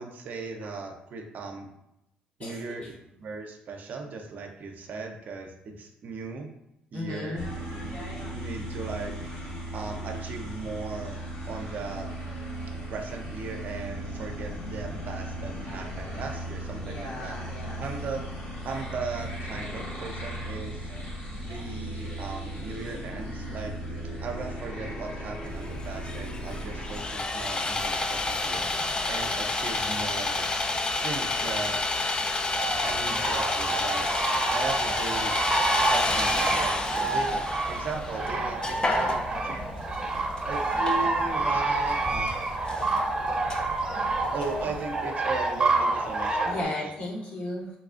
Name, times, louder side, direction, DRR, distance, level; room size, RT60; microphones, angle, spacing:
voice 1, 0.0-1.7 2.4-2.8 3.2-6.5 6.9-8.0 8.3-9.3 9.7-11.2 11.5-12.1 12.9-17.3 17.8-18.2 18.6-20.9 21.4-23.7 24.2-28.7 29.1-30.5 31.0-31.8 32.8-34.1 34.5-35.3 35.8-37.3 37.7-39.9 40.5-42.4 44.3-46.9, right 4 dB, 60° right, 3 dB, 0.5 m, -37 dB
voice 2, 2.4-2.9 6.9-7.5 16.8-17.8 40.0-40.1 46.4-47.7, left 1 dB, 45° left, -3 dB, 1.2 m, -35 dB
sound 1, 7.4-27.0, right 1 dB, 85° left, 1.5 m, -37 dB
Sawing, 25.4-44.8, left 2 dB, 25° left, 0.4 m, -30 dB
sound 2, 32.5-46.6, right 2 dB, 25° right, 0.8 m, -28 dB
3.9 x 2.3 x 2.4 m, 0.83 s
supercardioid pair, 70°, 3 cm